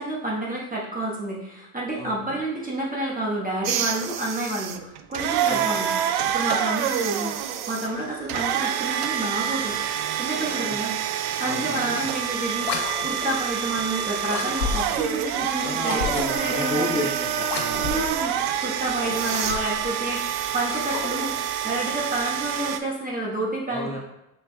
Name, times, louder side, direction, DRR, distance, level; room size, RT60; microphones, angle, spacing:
voice 1, 0.0-5.9 6.3-9.8 10.1-12.7 13.0-17.1 17.8-20.2 20.5-24.0, right 1 dB, 15° right, -4 dB, 1.2 m, -29 dB
voice 2, 2.0-2.4 5.5-5.9 10.6-10.7 11.4-12.1 15.6-18.3 23.7-24.0, left 2 dB, 15° left, -3 dB, 1.2 m, -32 dB
sound 1, 3.6-22.8, right 9 dB, 55° right, 0.5 m, -27 dB
sound 2, 12.6-13.4 14.3-15.1 15.8-16.5 17.4-18.2 18.9-19.9 20.5-21.4, left 5 dB, 80° left, 0.7 m, -32 dB
5.5 x 4.0 x 2.3 m, 0.89 s
hypercardioid pair, 65°, 50 cm